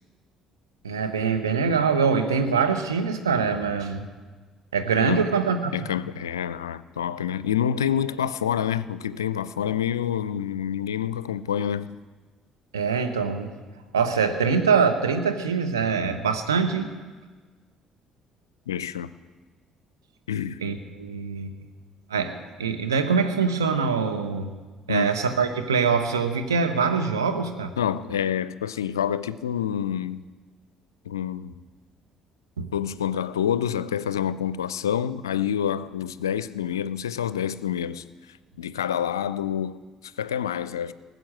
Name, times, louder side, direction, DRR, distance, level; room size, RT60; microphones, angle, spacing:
voice 1, 0.8-4.0 4.7-5.8 12.7-13.5 13.9-16.9 20.6-21.5 22.1-24.5 24.9-27.7 32.6-32.7, right 5 dB, 80° right, 1.1 m, -24 dB
voice 2, 5.7-11.9 18.7-19.1 20.3-20.6 24.9-25.1 27.8-30.3 31.1-31.6 32.7-38.0 38.6-40.9, left 9 dB, 80° left, 0.4 m, -27 dB
18.5 x 7.8 x 7.6 m
figure-of-eight pair, 50°, 2 cm